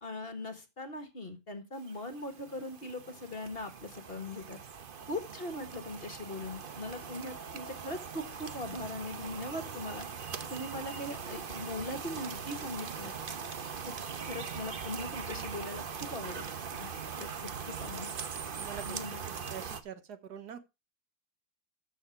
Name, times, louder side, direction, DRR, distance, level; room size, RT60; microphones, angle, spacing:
voice 1, 0.0-4.6 5.1-10.1 10.5-13.1 13.9-14.0 14.3-16.5 16.8-16.9 17.2-18.1 18.8-19.3, left 2 dB, 35° left, 1.6 m, -40 dB
sound 1, 1.7-19.8, right 6 dB, 40° right, 0.8 m, -41 dB
voice 2, 18.6-19.0 19.3-20.6, right 8 dB, 70° right, 1.6 m, -44 dB
14.0 x 6.1 x 4.6 m
omnidirectional pair, 1.8 m